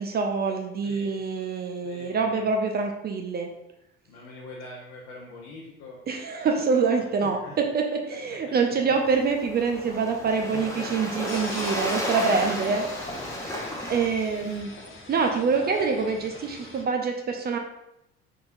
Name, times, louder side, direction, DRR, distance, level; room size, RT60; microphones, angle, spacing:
voice 1, 0.0-3.5 6.1-12.9 13.4-13.5 13.9-14.7 15.1-17.6, right 5 dB, 30° right, 3 dB, 0.5 m, -25 dB
voice 2, 1.8-2.5 4.0-6.0 7.2-8.8 9.9-11.1 11.4-11.9 12.8-14.4, left 2 dB, 60° left, -3 dB, 0.8 m, -45 dB
Waves surf, 8.9-14.6, equal, 10° left, 0.9 m, -33 dB
sound 1, 11.3-16.8, left 2 dB, 35° left, 1.1 m, -41 dB
4.2 x 3.8 x 2.5 m, 0.85 s
figure-of-eight pair, 55°, 33 cm